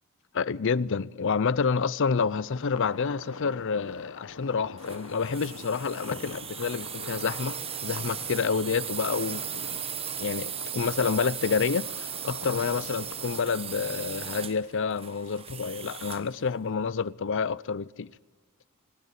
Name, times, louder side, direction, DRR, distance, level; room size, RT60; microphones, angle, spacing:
voice 1, 0.3-7.6 7.8-9.8 10.2-18.1, left 5 dB, 60° left, 0.6 m, -28 dB
sound 1, 2.4-13.9, left 3 dB, 75° left, 1.2 m, -45 dB
sound 2, 4.8-16.4, right 8 dB, 25° right, 1.2 m, -37 dB
26.0 x 12.5 x 9.8 m
head